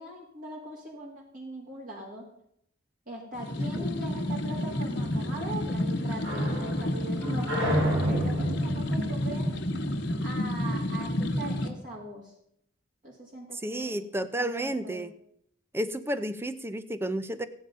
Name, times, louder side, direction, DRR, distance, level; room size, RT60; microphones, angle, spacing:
voice 1, 0.0-2.3 3.1-9.5 10.2-12.3 13.0-14.0 14.4-15.0, right 1 dB, 45° right, -2 dB, 2.5 m, -40 dB
sound 1, 3.3-11.7, left 1 dB, 60° left, 1.3 m, -30 dB
sound 2, 5.0-10.5, right 1 dB, 60° right, 4.6 m, -32 dB
voice 2, 13.6-15.1 15.7-17.5, right 1 dB, 10° right, 12 dB, 0.6 m, -31 dB
14.5 x 9.1 x 5.4 m, 0.72 s
head